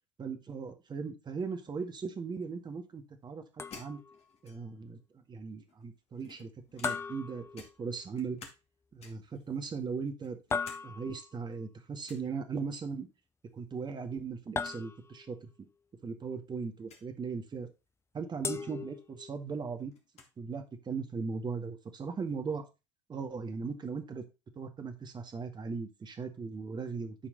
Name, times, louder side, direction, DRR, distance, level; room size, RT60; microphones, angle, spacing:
voice 1, 0.2-3.4 3.7-4.0 4.4-5.0 5.3-8.4 8.9-10.4 10.8-13.1 13.5-15.5 16.0-17.7 18.1-19.9 20.4-22.6 23.1-24.2 24.6-27.2, right 5 dB, 30° right, 6 dB, 1.9 m, -38 dB
sound 1, 3.6-4.2 6.8-8.1 10.5-11.4 14.6-15.4 18.4-19.5, left 5 dB, 15° left, 0.7 m, -38 dB
sound 2, 3.7-4.9 5.7-7.3 7.5-8.7 9.0-9.4 9.9-10.9 11.2-11.3 12.0-12.3 13.7-14.1 14.4-14.5 14.6-14.8 15.6-15.7 16.8-17.1 18.8-18.9 19.2-20.3, left 5 dB, 45° left, 2.4 m, -52 dB
11.5 x 4.5 x 4.0 m, 0.27 s
hypercardioid pair, 70°, 15 cm